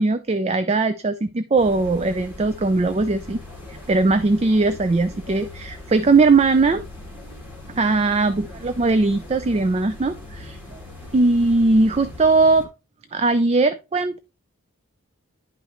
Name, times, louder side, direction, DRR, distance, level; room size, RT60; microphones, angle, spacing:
voice 1, 0.0-3.4 3.9-6.8 7.7-10.6 11.1-12.7 13.1-14.2, right 3 dB, 30° right, 12 dB, 0.4 m, -19 dB
sound 1, 1.6-12.6, left 2 dB, 10° right, 2.5 m, -40 dB
10.5 x 5.5 x 3.0 m, 0.28 s
head